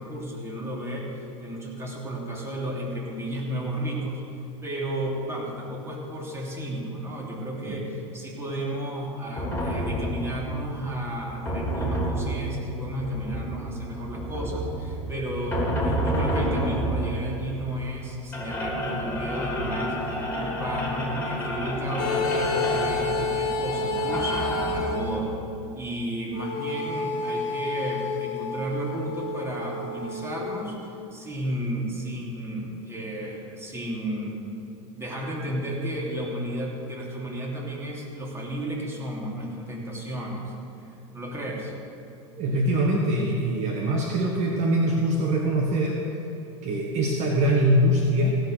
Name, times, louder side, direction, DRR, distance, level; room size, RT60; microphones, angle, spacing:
voice 1, 0.0-4.2 4.6-25.4 25.7-34.4 34.9-40.5 40.8-41.7, right 1 dB, 15° right, -3 dB, 3.1 m, -33 dB
sound 1, 9.4-24.8, equal, 10° left, 3.3 m, -30 dB
sound 2, 22.0-25.3 26.3-30.7, left 3 dB, 60° left, 1.1 m, -30 dB
voice 2, 42.4-46.0 46.6-48.4, right 1 dB, 45° right, 0 dB, 1.4 m, -23 dB
15.5 x 6.7 x 6.4 m, 2.7 s
hypercardioid pair, 90°, 16 cm